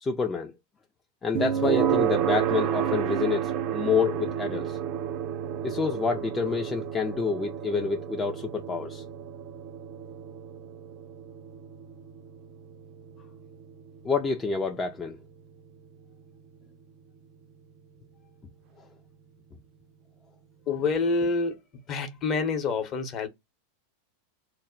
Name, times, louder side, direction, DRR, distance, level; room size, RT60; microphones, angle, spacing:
voice 1, 0.0-0.5 1.2-4.8 5.6-9.0 14.0-15.2, left 5 dB, 20° left, 0.4 m, -28 dB
sound 1, 1.3-16.3, right 9 dB, 50° right, 0.4 m, -31 dB
voice 2, 20.7-21.6 21.9-23.3, left 4 dB, 35° left, 0.8 m, -27 dB
2.0 x 2.0 x 3.7 m
hypercardioid pair, 110°, 0 cm